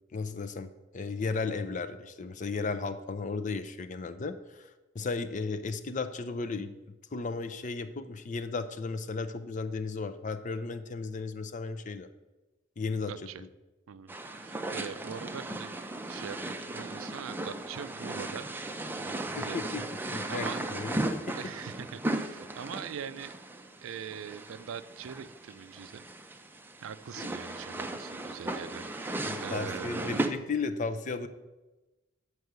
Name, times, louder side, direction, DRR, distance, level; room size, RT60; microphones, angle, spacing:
voice 1, 0.1-6.7 7.1-12.1 12.8-13.1 13.4-13.5 19.2-19.8 20.1-21.4 27.2-27.3 29.2-31.3, left 4 dB, 40° left, 10 dB, 0.5 m, -35 dB
voice 2, 13.1-13.4 13.9-15.7 16.1-18.5 19.0-20.6 21.4-23.3 23.8-26.1 26.8-30.2, right 7 dB, 85° right, 14 dB, 0.4 m, -42 dB
sound 1, 14.1-30.3, right 2 dB, 10° right, 0.5 m, -36 dB
7.9 x 4.8 x 6.7 m, 1.1 s
head